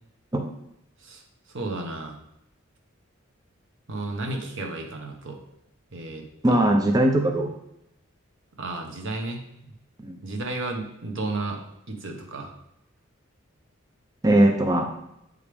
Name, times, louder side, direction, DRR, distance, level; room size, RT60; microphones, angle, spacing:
voice 1, 1.5-2.2 3.9-5.4 5.9-6.7 8.6-9.7 10.2-11.6 11.9-12.5, right 2 dB, 65° right, 3 dB, 1.1 m, -33 dB
voice 2, 6.4-7.5 10.0-10.2 14.2-14.8, right 1 dB, 20° right, 3 dB, 0.5 m, -20 dB
8.3 x 5.0 x 3.4 m, 0.80 s
head